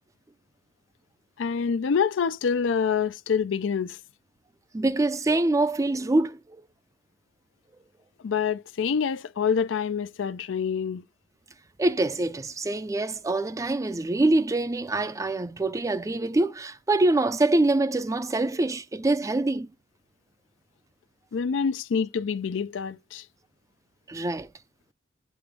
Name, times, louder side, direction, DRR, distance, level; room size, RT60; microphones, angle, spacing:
voice 1, 1.4-4.0 8.2-11.0 21.3-23.2, left 6 dB, 85° left, 0.4 m, -26 dB
voice 2, 4.7-6.6 11.8-19.7 24.1-24.5, right 2 dB, 15° right, 0.4 m, -25 dB
7.7 x 2.9 x 4.9 m
head